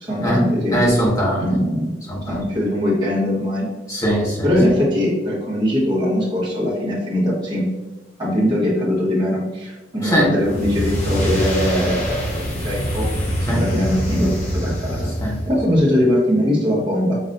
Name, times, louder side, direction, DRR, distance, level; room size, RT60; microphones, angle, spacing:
voice 1, 0.0-0.8 1.4-1.9 2.3-3.7 4.4-7.7 8.2-13.1 13.5-17.2, left 1 dB, 25° right, -7 dB, 1.5 m, -21 dB
voice 2, 0.7-1.4 2.1-2.4 3.9-4.5 10.0-10.3 13.5-13.6 15.2-15.4, equal, 20° left, -5 dB, 1.2 m, -20 dB
sound 1, 10.3-15.6, equal, 40° left, 1.0 m, -24 dB
5.2 x 3.0 x 2.6 m, 1.2 s
head